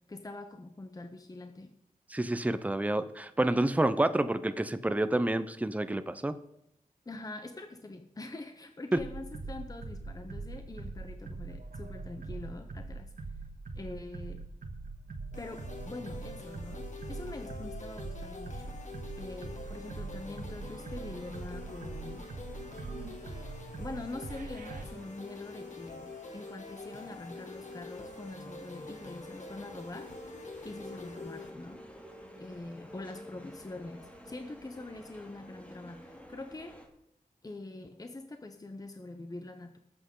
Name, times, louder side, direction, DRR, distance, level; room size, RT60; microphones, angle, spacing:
voice 1, 0.1-1.7 7.1-13.1 13.7-14.4 15.4-18.8 19.2-22.3 23.8-30.1 30.6-31.8 32.4-36.8 37.4-39.8, left 2 dB, 25° left, 7 dB, 0.9 m, -44 dB
voice 2, 2.1-6.3, right 1 dB, 10° right, 12 dB, 0.7 m, -29 dB
sound 1, 9.0-24.8, right 3 dB, 70° right, 1.8 m, -42 dB
sound 2, 15.3-31.5, left 3 dB, 55° left, 2.1 m, -46 dB
sound 3, 18.1-36.9, equal, 10° left, 2.3 m, -52 dB
19.0 x 8.1 x 3.8 m, 0.79 s
wide cardioid pair, 80°, 15 cm